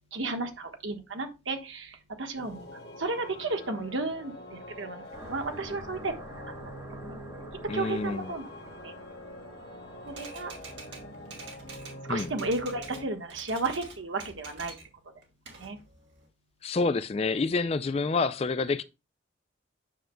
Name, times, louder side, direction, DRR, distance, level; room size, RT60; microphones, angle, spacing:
voice 1, 0.1-6.4 7.0-7.2 7.7-8.5 8.8-9.2 10.0-10.5 12.1-14.7 15.6-15.8, right 3 dB, 80° right, 1.3 m, -33 dB
sound 1, 2.4-13.0, left 1 dB, 60° left, 1.6 m, -45 dB
sound 2, 5.1-14.7, right 1 dB, 20° right, 1.2 m, -50 dB
voice 2, 7.7-8.3 12.1-12.3 16.6-18.8, left 3 dB, 30° left, 0.3 m, -28 dB
Typewriter, 10.1-13.0 13.3-14.9 15.2-16.3, right 4 dB, 65° right, 2.4 m, -46 dB
9.1 x 6.2 x 2.2 m
head